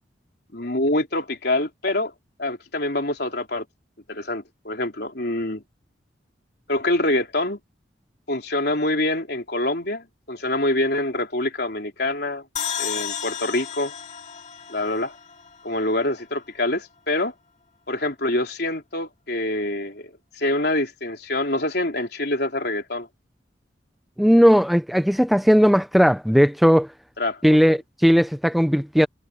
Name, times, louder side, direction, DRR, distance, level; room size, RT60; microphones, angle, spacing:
voice 1, 0.5-2.1 2.4-3.6 4.1-5.6 6.7-7.6 8.3-12.4 12.8-13.9 14.7-15.1 15.6-17.3 17.9-23.1 27.2-27.4 27.7-27.8, left 1 dB, 60° left, 4.0 m, -25 dB
sound 1, 12.6-15.9, left 8 dB, 40° left, 2.3 m, -32 dB
voice 2, 24.2-26.9 27.4-29.1, equal, ahead, 0.5 m, -17 dB
head